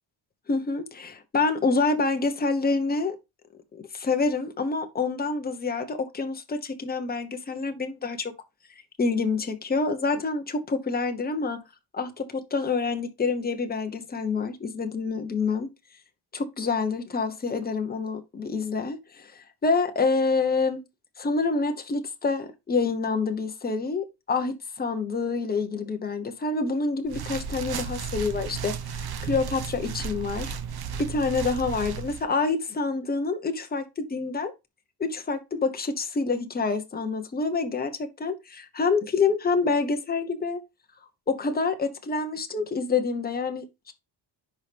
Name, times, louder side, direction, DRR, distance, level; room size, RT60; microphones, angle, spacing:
voice 1, 0.5-3.2 3.9-8.3 9.0-11.6 11.9-15.7 16.3-20.8 21.2-30.5 31.1-34.5 35.0-40.6 41.3-43.9, left 4 dB, 20° left, 1.0 m, -27 dB
sound 1, 27.0-32.2, right 6 dB, 50° right, 1.0 m, -34 dB
10.5 x 4.4 x 3.4 m
cardioid pair, 170°, 49 cm